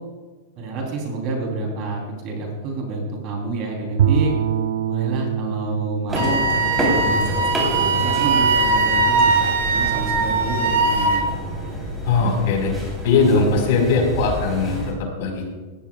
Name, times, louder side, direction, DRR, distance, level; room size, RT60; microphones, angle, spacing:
voice 1, 0.6-4.3 4.9-11.3, right 3 dB, 30° right, 0 dB, 3.4 m, -28 dB
Bowed string instrument, 4.0-8.2, right 8 dB, 80° right, 0.5 m, -25 dB
sound 1, 6.1-14.9, equal, 5° right, 3.5 m, -28 dB
Wind instrument woodwind instrument, 6.1-11.3, right 3 dB, 65° right, 1.8 m, -20 dB
voice 2, 12.0-12.7 13.0-15.5, left 4 dB, 50° left, 1 dB, 4.4 m, -20 dB
19.5 x 16.0 x 2.4 m, 1.4 s
supercardioid pair, 175°, 0 cm